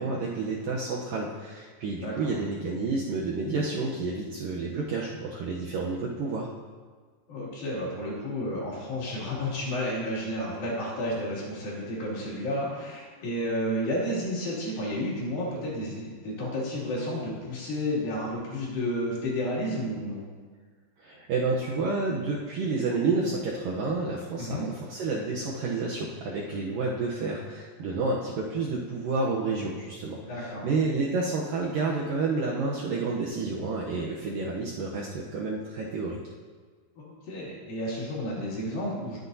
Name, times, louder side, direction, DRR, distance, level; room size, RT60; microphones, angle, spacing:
voice 1, 0.0-6.5 21.0-36.2, right 3 dB, 75° right, -3 dB, 2.1 m, -30 dB
voice 2, 2.0-2.4 7.3-20.3 24.4-24.7 30.3-30.7 37.0-39.2, equal, 60° left, -6 dB, 4.1 m, -31 dB
19.0 x 7.9 x 2.7 m, 1.5 s
omnidirectional pair, 4.9 m